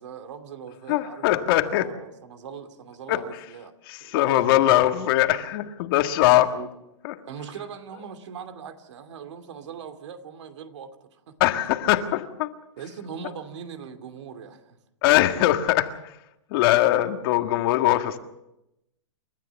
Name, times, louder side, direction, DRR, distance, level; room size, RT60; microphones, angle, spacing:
voice 1, 0.0-3.7 4.0-4.6 6.5-6.7 7.3-11.4 11.7-12.0 12.8-14.8, right 7 dB, 70° right, 8 dB, 2.7 m, -40 dB
voice 2, 0.9-1.9 3.1-3.2 3.9-6.5 7.0-7.1 11.4-12.5 15.0-16.2 16.5-18.2, left 14 dB, 50° left, 7 dB, 1.7 m, -21 dB
29.5 x 13.0 x 7.2 m, 0.89 s
hypercardioid pair, 135°, 16 cm